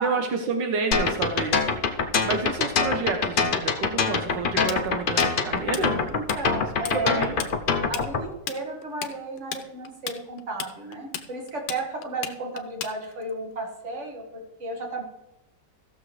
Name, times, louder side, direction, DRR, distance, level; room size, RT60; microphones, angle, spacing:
voice 1, 0.0-6.1 6.9-7.3, right 4 dB, 80° right, 5 dB, 1.6 m, -29 dB
sound 1, 0.9-8.2, left 5 dB, 60° left, 0.5 m, -24 dB
Tools, 4.7-6.4 6.7-7.0 7.2-13.3, left 9 dB, 90° left, 1.4 m, -34 dB
voice 2, 6.1-7.3 7.9-15.0, right 2 dB, 40° right, 1 dB, 2.1 m, -33 dB
15.5 x 6.8 x 3.2 m, 0.93 s
omnidirectional pair, 1.9 m